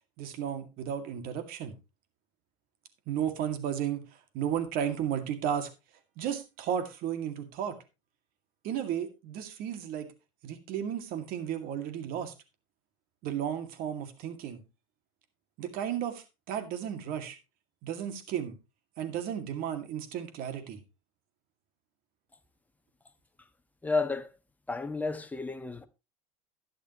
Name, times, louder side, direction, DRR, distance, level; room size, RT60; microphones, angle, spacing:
voice 1, 0.2-1.7 3.1-5.7 6.2-7.8 8.6-10.1 10.4-12.3 13.2-14.6 15.6-17.4 17.8-18.5 19.0-20.8, right 9 dB, 55° right, 2.1 m, -34 dB
voice 2, 23.8-24.3 24.7-25.9, left 3 dB, 10° left, 1.2 m, -31 dB
12.0 x 10.0 x 2.9 m
hypercardioid pair, 95°, 18 cm